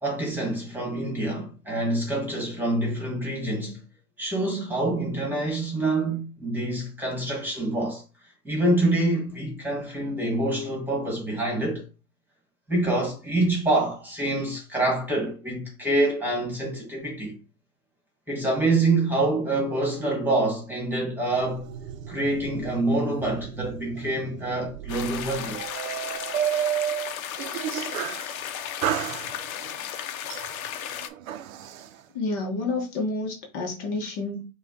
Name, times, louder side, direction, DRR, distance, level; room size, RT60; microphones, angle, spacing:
voice 1, 0.0-3.8 4.2-8.0 8.4-11.8 12.7-17.3 18.3-21.6 22.1-25.6, right 2 dB, 5° right, 1.6 m, -26 dB
sound 1, 21.3-28.3 28.8-29.7 30.3-31.9, right 10 dB, 65° right, 0.7 m, -32 dB
Stream in a dirt road, 24.9-31.1, left 9 dB, 70° left, 0.8 m, -35 dB
voice 2, 32.1-34.5, left 3 dB, 40° left, 1.2 m, -29 dB
5.8 x 2.4 x 3.7 m
supercardioid pair, 145°, 43 cm